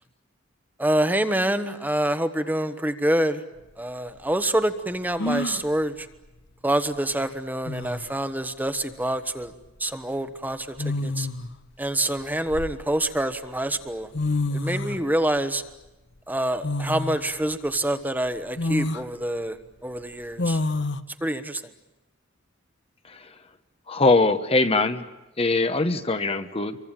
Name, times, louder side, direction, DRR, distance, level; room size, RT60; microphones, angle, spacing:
voice 1, 0.8-3.4 3.8-6.1 6.6-9.5 9.8-11.3 11.8-14.1 14.5-15.6 16.3-19.6 19.8-20.6 21.2-21.6, right 1 dB, 10° right, 9 dB, 1.2 m, -26 dB
sound 1, 3.6-3.7 5.2-5.7 7.2-7.3 7.7-8.1 9.5-9.7 10.8-11.5 12.2-13.2 13.9-14.0 14.1-15.0 16.6-17.2 17.7-17.8 18.6-19.1 20.4-21.0, left 2 dB, 60° left, 1.0 m, -28 dB
voice 2, 23.9-25.0 25.4-26.8, left 3 dB, 30° left, 9 dB, 1.0 m, -22 dB
27.0 x 23.5 x 9.0 m, 1.0 s
head